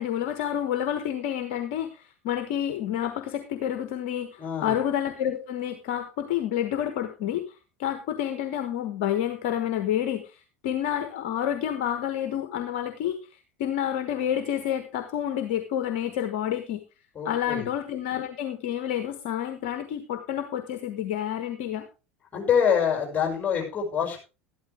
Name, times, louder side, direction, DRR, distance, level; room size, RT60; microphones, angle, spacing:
voice 1, 0.0-7.4 7.8-13.2 13.6-16.8 17.2-21.8, left 10 dB, 60° left, 8 dB, 1.3 m, -29 dB
voice 2, 4.4-4.7 17.1-17.7 22.3-24.2, left 7 dB, 25° left, 1 dB, 5.9 m, -25 dB
12.5 x 12.0 x 3.4 m, 0.31 s
figure-of-eight pair, 75°, 7 cm